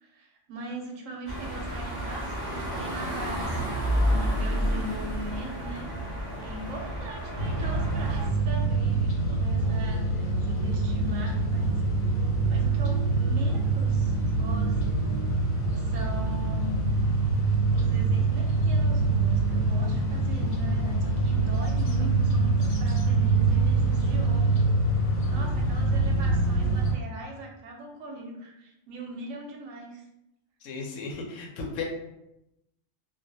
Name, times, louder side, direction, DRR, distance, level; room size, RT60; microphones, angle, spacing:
voice 1, 0.0-11.8 12.5-15.5 15.7-16.9 17.7-24.7 25.2-30.0, right 1 dB, 80° right, 0 dB, 1.0 m, -40 dB
sound 1, 1.3-8.3, equal, 25° right, 0.5 m, -30 dB
sound 2, 7.4-26.9, right 3 dB, 90° left, 1.1 m, -25 dB
voice 2, 30.6-31.8, left 4 dB, 70° left, 1 dB, 0.9 m, -35 dB
2.3 x 2.3 x 2.6 m, 0.87 s
omnidirectional pair, 1.4 m